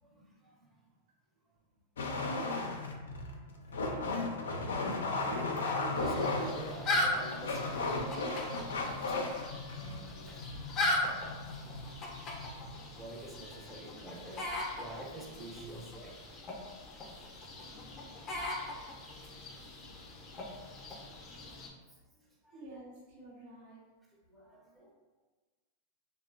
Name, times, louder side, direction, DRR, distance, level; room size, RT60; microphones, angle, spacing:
voice 1, 0.0-0.7 3.5-3.9 4.9-9.4 9.6-10.5 12.7-16.3 18.9-19.1 19.4-19.9 20.5-21.1 21.9-22.6 24.3-24.9, right 1 dB, 10° right, -3 dB, 0.6 m, -49 dB
sound 1, 2.0-13.0, left 3 dB, 85° left, 0.4 m, -36 dB
sound 2, 5.9-21.7, left 1 dB, 30° left, 0.5 m, -39 dB
voice 2, 22.5-23.8, right 1 dB, 55° right, -5 dB, 0.6 m, -50 dB
2.8 x 2.1 x 2.4 m, 1.3 s
hypercardioid pair, 110°, 0 cm